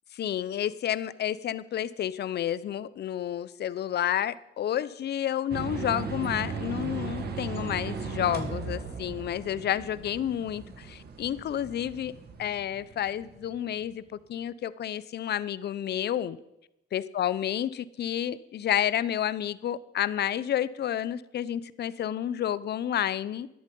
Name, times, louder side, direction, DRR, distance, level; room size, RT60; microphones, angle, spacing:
voice 1, 0.1-12.1 12.4-14.0 14.3-16.4 16.9-23.5, left 10 dB, 55° left, 18 dB, 0.6 m, -30 dB
sound 1, 5.5-13.6, right 4 dB, 55° right, 1.9 m, -37 dB
12.5 x 10.5 x 5.3 m, 0.89 s
cardioid pair, 90°, 20 cm